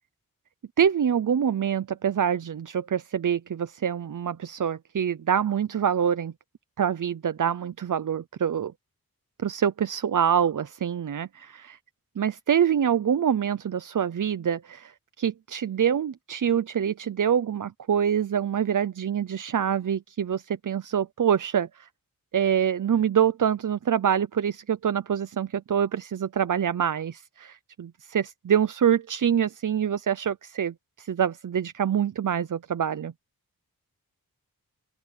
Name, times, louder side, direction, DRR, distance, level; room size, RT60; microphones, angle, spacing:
voice 1, 0.8-6.3 6.8-8.7 9.4-11.8 12.2-21.9 22.3-33.1, right 8 dB, 60° right, 0.7 m, -25 dB
open air
wide cardioid pair, 105°, 36 cm